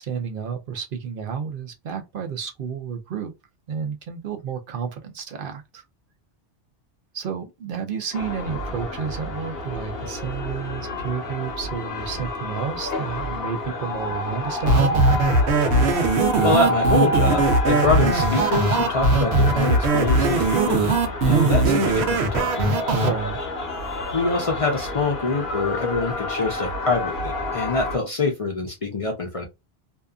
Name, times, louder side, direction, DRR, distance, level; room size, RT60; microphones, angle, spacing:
voice 1, 0.0-3.3 3.7-5.8 7.1-15.0 21.3-21.6 23.0-23.4, right 7 dB, 65° right, 0.7 m, -31 dB
sound 1, 8.1-28.0, left 1 dB, 70° left, 1.0 m, -28 dB
sound 2, 14.7-23.1, right 3 dB, 90° right, 0.9 m, -20 dB
voice 2, 16.4-22.7 24.1-29.5, left 3 dB, 40° left, 0.5 m, -25 dB
2.7 x 2.3 x 2.3 m
omnidirectional pair, 1.1 m